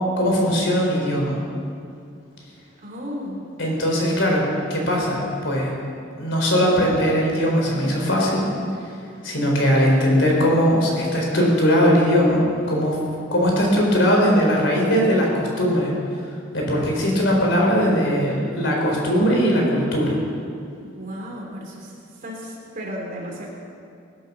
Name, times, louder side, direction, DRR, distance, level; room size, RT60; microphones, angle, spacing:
voice 1, 0.2-1.4 3.6-4.4 4.7-5.2 5.4-5.7 6.2-8.4 8.8-8.9 9.2-12.4 12.7-13.0 13.3-15.9 16.5-20.2, equal, 65° left, -1 dB, 4.1 m, -19 dB
voice 2, 2.8-3.5 20.8-21.9 22.2-23.5, equal, 45° right, -1 dB, 3.3 m, -34 dB
20.5 x 10.5 x 6.1 m, 2.5 s
head